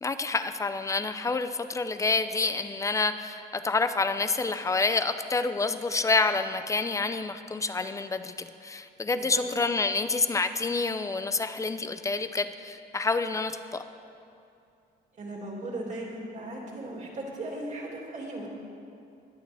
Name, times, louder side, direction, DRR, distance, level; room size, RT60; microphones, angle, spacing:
voice 1, 0.0-13.8, left 3 dB, 15° left, 10 dB, 0.5 m, -28 dB
voice 2, 15.2-18.5, right 2 dB, 40° right, -2 dB, 2.5 m, -37 dB
22.0 x 9.0 x 3.5 m, 2.5 s
cardioid pair, 130°, 18 cm